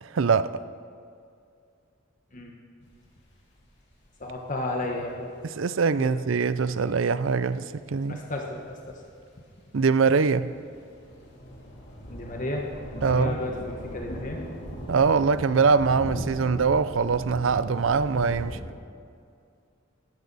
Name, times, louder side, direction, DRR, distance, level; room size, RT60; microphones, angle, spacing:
voice 1, 0.0-0.5 5.6-8.2 9.7-10.5 13.0-13.4 14.9-18.6, right 5 dB, 75° right, 0.5 m, -23 dB
sound 1, 2.9-3.6 4.1-4.2 4.6-4.7 7.0-7.1 8.8-9.0 9.3-18.6, equal, 60° left, 3.0 m, -39 dB
voice 2, 4.2-5.3 6.0-6.1 8.1-9.0 12.1-12.7 13.1-14.4, left 1 dB, 40° left, 1.3 m, -33 dB
17.5 x 13.0 x 4.1 m
head